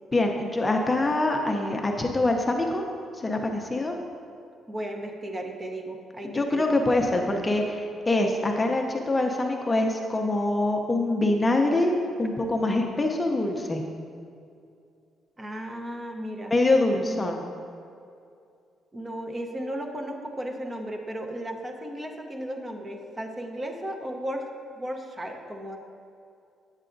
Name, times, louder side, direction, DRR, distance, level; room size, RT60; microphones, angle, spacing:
voice 1, 0.1-2.8 3.2-4.0 6.2-11.9 12.2-13.8 16.5-17.4, left 2 dB, 20° left, 2 dB, 0.6 m, -24 dB
voice 2, 4.7-6.8 15.4-16.5 17.0-17.4 18.9-24.5 24.8-25.8, equal, 25° right, 3 dB, 0.8 m, -35 dB
8.0 x 7.6 x 2.6 m, 2.5 s
cardioid pair, 90°, 0 cm